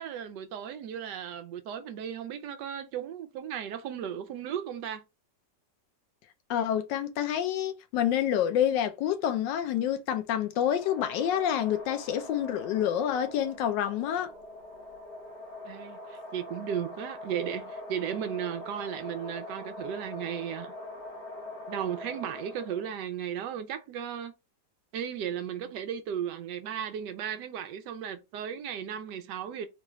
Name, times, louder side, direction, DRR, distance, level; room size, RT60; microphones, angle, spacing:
voice 1, 0.0-5.0 15.6-20.7 21.7-24.3 24.9-29.7, right 9 dB, 75° right, 1.2 m, -35 dB
voice 2, 6.5-14.3, left 10 dB, 85° left, 1.3 m, -28 dB
sound 1, 10.5-23.0, left 2 dB, 65° left, 2.0 m, -43 dB
3.8 x 2.3 x 3.0 m
omnidirectional pair, 1.9 m